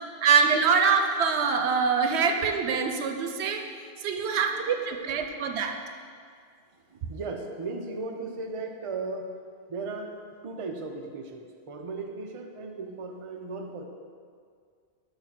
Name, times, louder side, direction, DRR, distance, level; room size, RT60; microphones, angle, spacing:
voice 1, 0.2-3.6 4.0-5.8, right 5 dB, 85° right, 6 dB, 0.9 m, -24 dB
voice 2, 4.2-5.1 6.7-9.4 9.7-13.8, right 3 dB, 40° right, 3 dB, 0.5 m, -37 dB
8.7 x 3.2 x 5.7 m, 2.1 s
omnidirectional pair, 1.1 m